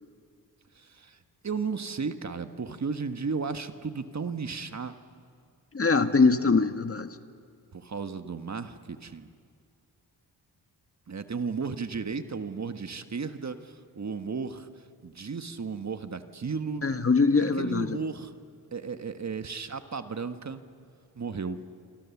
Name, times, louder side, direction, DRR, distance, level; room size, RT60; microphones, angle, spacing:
voice 1, 0.8-1.2 1.4-4.9 7.7-9.3 11.1-14.7 15.0-16.8 17.3-18.3 18.7-20.6 21.2-21.6, right 5 dB, 40° right, 9 dB, 1.4 m, -34 dB
voice 2, 5.7-7.1 16.8-18.0, left 4 dB, 35° left, 9 dB, 1.4 m, -23 dB
28.5 x 25.5 x 7.2 m, 2.2 s
cardioid pair, 55°, 40 cm